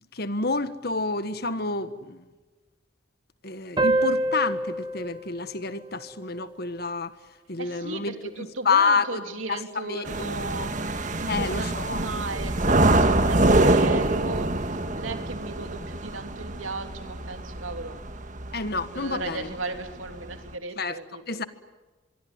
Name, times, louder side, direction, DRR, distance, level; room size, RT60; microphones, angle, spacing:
voice 1, 0.1-2.2 3.4-7.1 7.5-9.2 9.5-10.3 10.5-10.7 11.3-12.0 18.5-19.6 20.8-21.0 21.3-21.4, left 4 dB, 50° left, 12 dB, 1.5 m, -28 dB
sound 1, 3.8-6.9, right 1 dB, 20° right, 1.3 m, -28 dB
voice 2, 7.6-10.7 11.2-18.0 18.8-21.4, right 3 dB, 90° right, 6 dB, 3.2 m, -36 dB
sound 2, 10.1-19.4 19.8-20.5, right 2 dB, 40° right, 1.6 m, -25 dB
25.5 x 23.0 x 9.5 m, 1.2 s
head